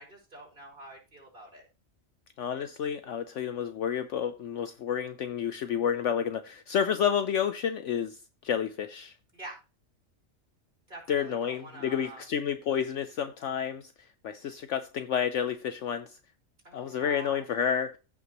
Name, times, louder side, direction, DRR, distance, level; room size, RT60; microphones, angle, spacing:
voice 1, 0.0-1.7 9.3-9.6 10.9-12.2 16.6-17.4, right 2 dB, 35° right, 5.3 m, -46 dB
voice 2, 2.4-9.1 11.1-13.9 14.2-16.2 16.7-18.0, left 8 dB, 65° left, 1.0 m, -30 dB
15.5 x 6.0 x 3.0 m
omnidirectional pair, 1.4 m